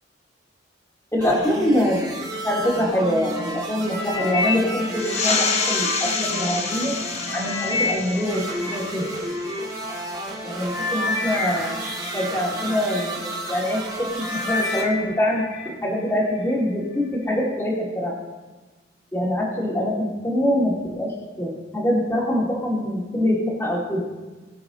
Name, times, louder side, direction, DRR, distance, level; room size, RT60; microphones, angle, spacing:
voice 1, 1.1-2.0 2.4-6.9 7.3-9.0 10.4-11.8 12.1-18.1 19.1-24.0, equal, 15° left, -6 dB, 2.4 m, -24 dB
sound 1, 1.2-14.8, right 1 dB, 20° right, 2.3 m, -32 dB
sound 2, 3.9-6.2 6.8-9.6 10.3-10.4 10.7-13.1 13.6-13.9 14.2-15.7 16.1-16.5 17.1-17.2, left 4 dB, 65° left, 1.9 m, -30 dB
sound 3, 4.9-10.0, left 5 dB, 35° left, 1.0 m, -28 dB
20.5 x 7.1 x 3.9 m, 1.2 s
head